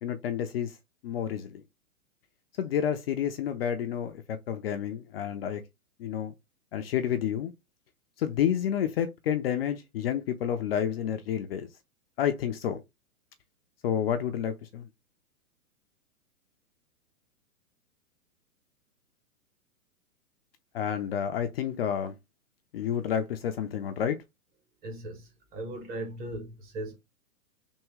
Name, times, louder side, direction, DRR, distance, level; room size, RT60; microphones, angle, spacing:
voice 1, 0.0-0.8 1.0-1.6 2.6-5.6 6.0-6.3 6.7-7.5 8.2-11.7 12.2-12.8 13.8-14.9 20.7-22.2 22.7-24.2, left 9 dB, 45° left, 0.5 m, -30 dB
voice 2, 24.8-26.9, right 1 dB, 20° right, 0.9 m, -38 dB
3.6 x 2.7 x 3.1 m
hypercardioid pair, 135°, 44 cm